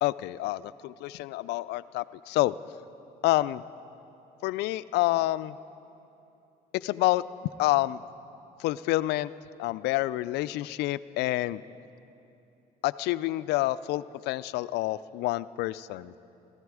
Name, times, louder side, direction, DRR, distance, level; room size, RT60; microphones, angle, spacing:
voice 1, 0.0-2.6 3.2-3.6 4.4-5.6 6.7-7.2 7.6-8.0 8.6-9.3 9.6-11.6 12.8-16.2, left 17 dB, 80° left, 16 dB, 0.4 m, -28 dB
21.0 x 14.0 x 4.8 m, 2.8 s
cardioid pair, 110°, 17 cm